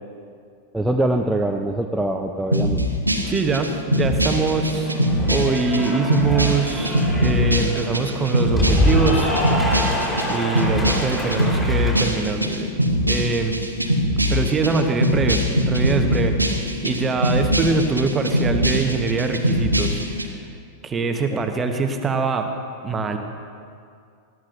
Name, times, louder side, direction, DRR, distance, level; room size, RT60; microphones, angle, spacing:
voice 1, 0.7-2.8 21.3-21.4, right 1 dB, 5° right, 2 dB, 0.7 m, -23 dB
sound 1, 2.5-20.3, equal, 85° right, 1.0 m, -22 dB
voice 2, 3.2-4.9 5.2-9.3 10.2-12.7 13.1-13.6 14.3-20.0 20.8-22.5 22.8-23.2, right 4 dB, 20° right, 5 dB, 1.2 m, -23 dB
Cheering / Applause, 4.3-12.0, equal, 10° left, 4.1 m, -25 dB
20.0 x 15.0 x 2.6 m, 2.3 s
figure-of-eight pair, 90°, 0 cm